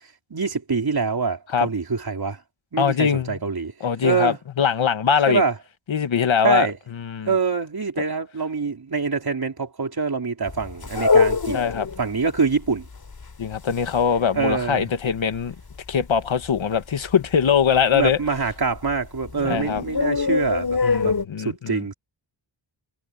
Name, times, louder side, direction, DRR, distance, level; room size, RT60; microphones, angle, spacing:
voice 1, 0.3-2.4 2.7-3.7 4.0-4.4 5.3-5.5 6.4-6.8 7.3-11.6 12.0-12.9 14.3-14.9 17.9-21.9, right 5 dB, 50° right, 4.0 m, -25 dB
voice 2, 2.8-3.4 3.8-5.4 5.9-6.7 6.9-7.3 11.5-11.9 13.4-15.5 15.9-18.2 19.4-19.8 20.8-21.8, left 7 dB, 80° left, 1.6 m, -22 dB
sound 1, 10.5-12.0 12.4-12.5 12.7-14.9 15.2-15.4 15.8-16.3 16.6-16.7 17.1-17.2 17.6-19.0 19.2-21.3, left 4 dB, 50° left, 3.3 m, -23 dB
wide cardioid pair, 95°, 46 cm